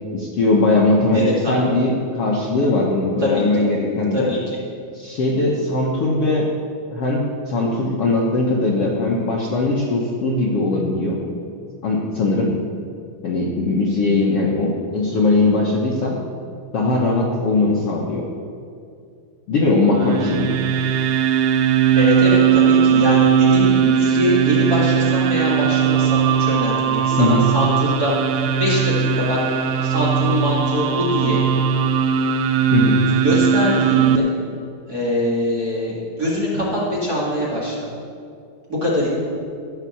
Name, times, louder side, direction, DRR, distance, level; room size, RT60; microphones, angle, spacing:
voice 1, 0.1-4.3 4.9-6.5 6.9-11.2 11.8-12.5 13.2-16.2 16.7-18.2 19.5-20.5 27.2-27.4 32.7-33.0, left 2 dB, 85° left, -2 dB, 1.3 m, -20 dB
voice 2, 1.1-1.6 3.2-3.4 4.1-4.4 21.9-29.4 29.8-31.4 33.2-34.3 34.9-37.7 38.7-39.2, left 1 dB, 35° right, -6 dB, 1.7 m, -23 dB
sound 1, 19.9-34.2, right 7 dB, 90° right, 1.8 m, -18 dB
15.5 x 5.7 x 7.1 m, 2.4 s
omnidirectional pair, 4.4 m